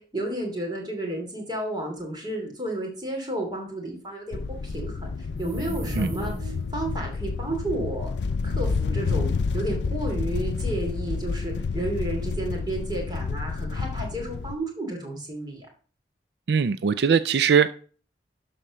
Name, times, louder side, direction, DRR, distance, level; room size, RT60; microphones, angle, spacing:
voice 1, 0.0-8.1 8.4-15.7, right 1 dB, 25° right, 2.9 m, -32 dB
sound 1, 4.3-14.5, left 4 dB, 80° left, 0.4 m, -29 dB
sound 2, 5.2-6.8, equal, 40° right, 2.6 m, -35 dB
voice 2, 16.5-17.7, right 6 dB, 70° right, 0.4 m, -21 dB
12.0 x 4.3 x 6.1 m
head